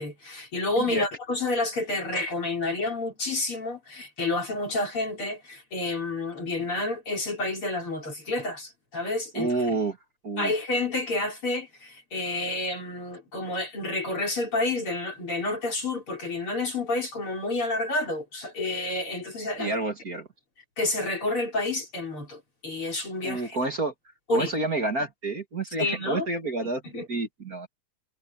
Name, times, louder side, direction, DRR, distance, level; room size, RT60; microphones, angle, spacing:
voice 1, 0.0-9.5 10.4-19.7 20.8-23.6 24.3-24.5 25.8-26.3 26.8-27.1, left 2 dB, 45° left, 5.3 m, -29 dB
voice 2, 9.3-10.0 10.2-10.5 19.6-20.3 23.2-23.9 24.3-26.8 27.1-27.7, right 2 dB, 35° right, 2.1 m, -29 dB
omnidirectional pair, 3.5 m